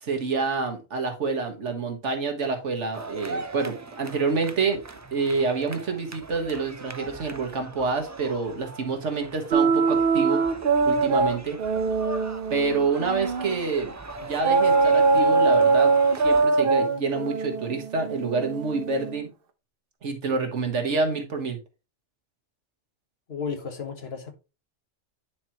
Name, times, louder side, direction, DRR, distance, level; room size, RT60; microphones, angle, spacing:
voice 1, 0.0-4.8 5.1-10.4 10.9-11.6 12.5-14.0 14.2-19.3 20.0-21.6, right 4 dB, 85° right, 1.7 m, -27 dB
sound 1, 2.9-16.4, right 2 dB, 30° right, 0.3 m, -40 dB
sound 2, 9.5-13.7 14.4-19.2, right 4 dB, 55° right, 0.9 m, -22 dB
voice 2, 23.3-24.3, left 6 dB, 60° left, 1.5 m, -33 dB
9.6 x 4.5 x 2.9 m
omnidirectional pair, 1.2 m